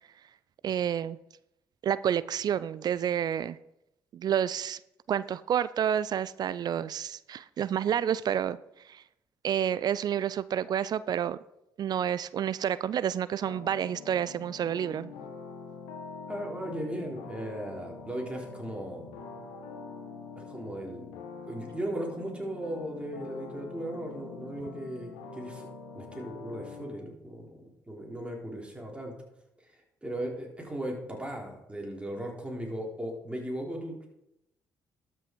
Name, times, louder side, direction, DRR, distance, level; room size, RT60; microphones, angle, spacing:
voice 1, 0.6-1.2 1.8-3.6 4.1-4.8 5.1-8.6 8.9-9.0 9.4-11.4 11.8-15.1, right 9 dB, 55° right, 18 dB, 0.4 m, -29 dB
sound 1, 13.4-26.9, left 4 dB, 85° left, 1.5 m, -45 dB
voice 2, 16.3-19.1 20.4-21.1 21.4-25.7 25.9-27.5 27.9-29.1 29.6-29.7 30.0-34.1, right 1 dB, 15° right, 0 dB, 3.7 m, -37 dB
12.5 x 6.0 x 4.5 m, 0.84 s
hypercardioid pair, 55°, 8 cm